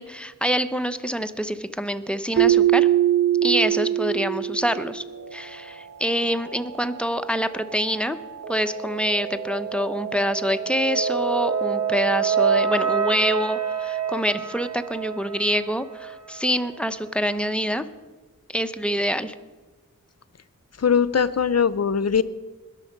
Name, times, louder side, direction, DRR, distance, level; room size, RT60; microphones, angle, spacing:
voice 1, 0.0-2.9 3.4-5.0 5.3-8.2 8.5-17.8 18.5-19.3, equal, 5° left, 9 dB, 1.0 m, -26 dB
Keyboard (musical), 2.4-5.2, right 12 dB, 35° right, 1.0 m, -21 dB
sound 1, 5.1-16.4, right 6 dB, 55° right, 1.4 m, -28 dB
voice 2, 20.8-22.2, left 6 dB, 50° left, 16 dB, 0.7 m, -20 dB
21.0 x 7.2 x 5.3 m, 1.2 s
cardioid pair, 45°, 32 cm